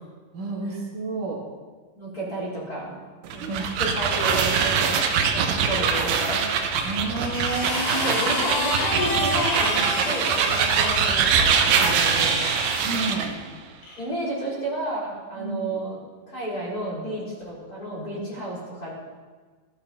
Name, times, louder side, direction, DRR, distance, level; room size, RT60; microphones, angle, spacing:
voice 1, 0.3-1.5 3.4-3.6 5.5-5.8 6.8-8.2 12.8-13.4 15.4-15.8 18.4-18.5, right 2 dB, 50° right, -3 dB, 3.6 m, -31 dB
voice 2, 2.0-2.9 3.3-5.0 5.3-6.4 7.9-12.4 14.0-16.0 16.3-18.9, right 1 dB, 20° left, -6 dB, 4.2 m, -32 dB
sound 1, 3.2-13.3, right 6 dB, 70° right, 2.2 m, -23 dB
sound 2, 6.7-11.0 11.9-12.9 13.8-14.0, left 2 dB, 55° left, 4.6 m, -29 dB
16.0 x 13.5 x 4.3 m, 1.5 s
omnidirectional pair, 5.1 m